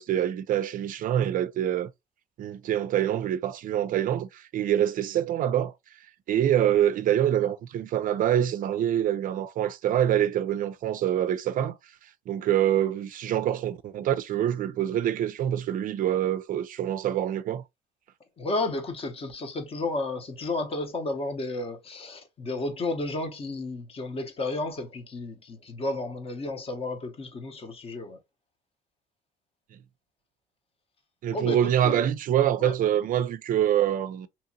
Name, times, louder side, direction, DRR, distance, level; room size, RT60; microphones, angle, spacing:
voice 1, 0.0-1.9 2.4-5.7 6.3-11.8 12.3-17.6 31.2-34.3, right 11 dB, 55° right, 0.4 m, -25 dB
voice 2, 18.4-28.2 31.3-32.0 32.6-32.7, left 2 dB, 35° left, 0.8 m, -32 dB
2.9 x 2.7 x 2.6 m
cardioid pair, 110°, 17 cm